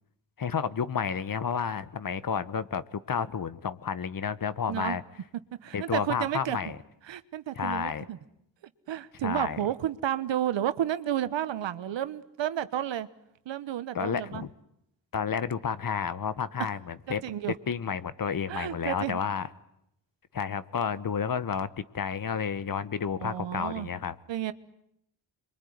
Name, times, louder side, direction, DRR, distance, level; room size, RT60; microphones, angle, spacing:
voice 1, 0.4-5.0 5.7-6.8 7.5-8.0 9.2-9.6 13.9-14.5 15.1-17.2 17.7-19.5 20.3-24.2, left 7 dB, 50° left, 1.3 m, -31 dB
voice 2, 5.6-6.6 7.1-8.2 8.9-13.1 13.4-14.5 17.1-17.5 18.5-19.2 23.2-23.9 24.3-24.5, right 11 dB, 75° right, 1.3 m, -31 dB
26.5 x 23.0 x 9.5 m
cardioid pair, 65°, 44 cm